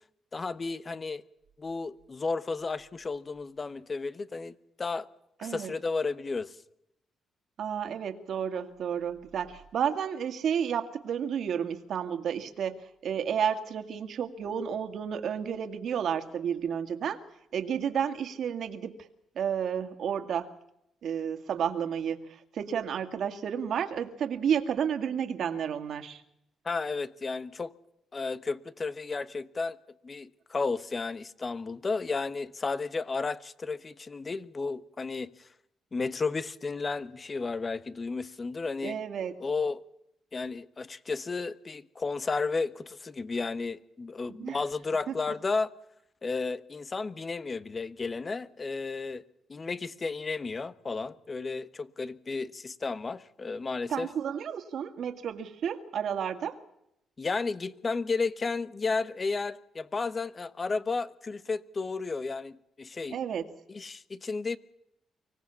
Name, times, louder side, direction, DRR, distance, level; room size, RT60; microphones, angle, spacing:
voice 1, 0.3-1.2 1.6-5.1 5.4-6.6 26.6-27.7 28.1-29.8 30.0-35.3 35.9-39.0 39.4-39.8 40.3-45.7 46.2-49.2 49.5-54.1 57.2-63.2 63.7-64.6, left 4 dB, 30° left, 1.1 m, -33 dB
voice 2, 5.4-5.7 7.6-17.2 17.5-19.0 19.4-20.5 21.0-26.2 38.8-39.3 44.4-44.6 45.1-45.2 53.9-56.6 63.1-63.5, right 8 dB, 65° right, 2.2 m, -31 dB
25.0 x 18.0 x 7.1 m
cardioid pair, 105°, 0 cm